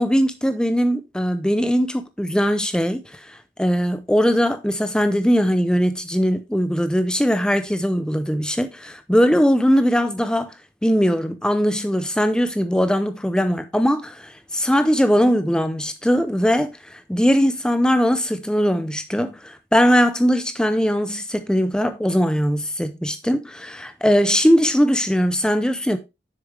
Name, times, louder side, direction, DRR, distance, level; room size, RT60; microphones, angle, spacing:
voice 1, 0.0-10.5 10.8-26.0, equal, 5° left, 0.5 m, -20 dB
7.2 x 6.6 x 3.3 m
head